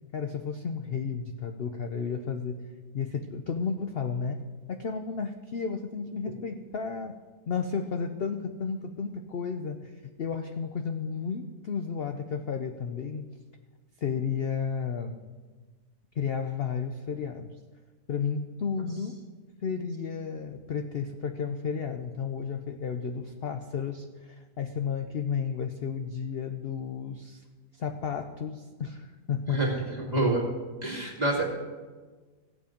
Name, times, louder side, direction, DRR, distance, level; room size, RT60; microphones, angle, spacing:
voice 1, 0.1-2.6 2.9-4.4 4.7-7.1 7.5-9.9 10.2-13.3 14.0-15.3 16.2-17.6 18.1-19.2 19.6-27.4 27.7-29.6, left 6 dB, 55° left, 6 dB, 0.6 m, -32 dB
voice 2, 29.5-30.4 30.8-31.4, right 2 dB, 25° right, -2 dB, 2.2 m, -27 dB
16.5 x 8.4 x 5.1 m, 1.4 s
omnidirectional pair, 1.7 m